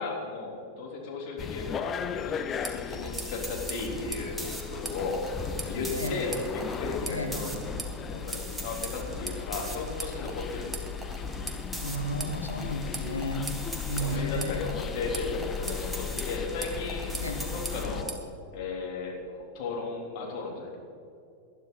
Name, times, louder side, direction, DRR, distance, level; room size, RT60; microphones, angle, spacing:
voice 1, 0.0-5.2 5.6-10.9 13.9-18.1 18.5-20.8, left 3 dB, 45° left, -2 dB, 3.7 m, -35 dB
sound 1, 1.4-18.0, left 7 dB, 25° left, 0.6 m, -37 dB
sound 2, 2.5-18.2, right 2 dB, 10° right, 1.7 m, -40 dB
voice 2, 11.8-13.5 13.9-14.6 17.2-17.4, equal, 85° left, 3 dB, 1.6 m, -33 dB
20.0 x 12.0 x 4.1 m, 2.6 s
figure-of-eight pair, 90°, 0 cm